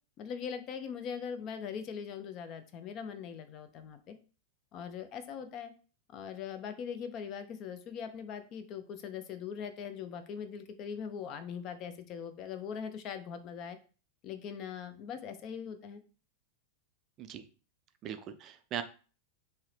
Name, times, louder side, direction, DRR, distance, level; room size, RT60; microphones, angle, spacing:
voice 1, 0.2-4.2 4.7-5.7 6.1-13.8 14.2-16.0, left 7 dB, 35° left, 9 dB, 0.4 m, -41 dB
voice 2, 18.0-18.8, right 9 dB, 35° right, 10 dB, 0.3 m, -39 dB
2.8 x 2.7 x 3.2 m, 0.37 s
figure-of-eight pair, 90°, 0 cm